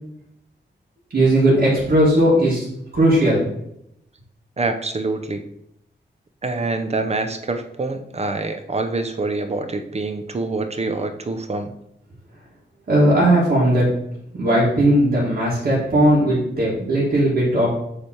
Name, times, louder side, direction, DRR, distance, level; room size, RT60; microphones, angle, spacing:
voice 1, 1.1-2.6 2.9-3.4 12.9-13.8 14.3-17.7, right 1 dB, 55° right, -7 dB, 1.7 m, -17 dB
voice 2, 4.6-5.4 6.4-11.7, right 3 dB, 35° right, 8 dB, 0.6 m, -25 dB
7.0 x 3.4 x 4.3 m, 0.77 s
wide cardioid pair, 150°, 19 cm